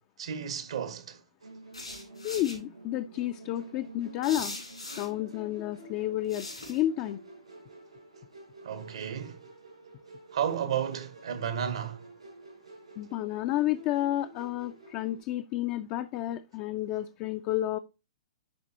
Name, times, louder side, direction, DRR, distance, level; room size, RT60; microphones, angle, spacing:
voice 1, 0.2-1.2 8.6-9.4 10.3-12.1, right 8 dB, 65° right, 1.1 m, -33 dB
Musical instrument, 1.4-15.2, right 1 dB, 80° right, 4.3 m, -50 dB
sound 1, 1.7-2.6 4.2-5.1 6.3-6.8, left 2 dB, 90° left, 3.8 m, -40 dB
voice 2, 2.2-4.6 5.0-7.2 13.0-17.8, left 14 dB, 35° left, 0.4 m, -31 dB
10.5 x 4.0 x 2.8 m
figure-of-eight pair, 115°, 3 cm